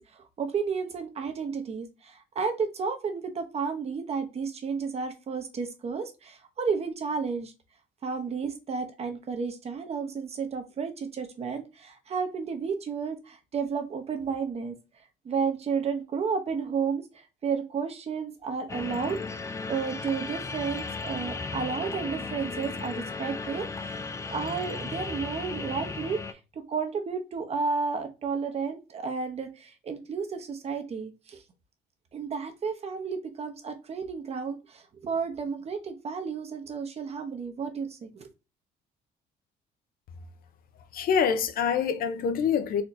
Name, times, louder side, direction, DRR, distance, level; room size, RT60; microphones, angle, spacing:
voice 1, 0.0-7.5 8.0-14.8 15.2-17.1 17.4-31.4 32.1-38.3, right 5 dB, 40° right, 0.9 m, -32 dB
sound 1, 18.7-26.3, left 4 dB, 20° left, 0.4 m, -35 dB
voice 2, 40.9-42.8, left 7 dB, 60° left, 0.6 m, -25 dB
4.2 x 2.8 x 2.6 m
cardioid pair, 110°, 17 cm